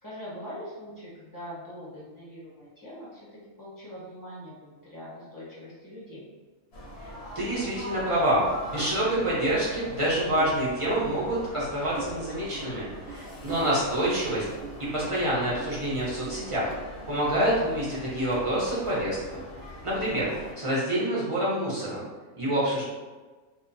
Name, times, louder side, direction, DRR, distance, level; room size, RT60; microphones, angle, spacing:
voice 1, 0.0-6.3 13.5-13.8 20.1-20.4, equal, 20° left, -9 dB, 0.7 m, -42 dB
sound 1, 6.7-20.5, equal, 55° left, 0.9 m, -43 dB
voice 2, 7.3-14.4 14.8-16.7 17.1-19.4 19.8-20.2 20.6-22.0 22.4-22.8, right 1 dB, 35° right, -7 dB, 0.5 m, -27 dB
sound 2, 8.4-9.0 9.4-9.7 10.0-10.6 11.0-11.1 11.6-11.7 11.9-12.6 13.1-13.2 13.5-14.2 14.6-15.1 15.6-15.8 16.3-16.8 17.3-17.6 17.9-18.4, right 4 dB, 80° right, 1.2 m, -40 dB
2.8 x 2.2 x 2.5 m, 1.3 s
omnidirectional pair, 1.4 m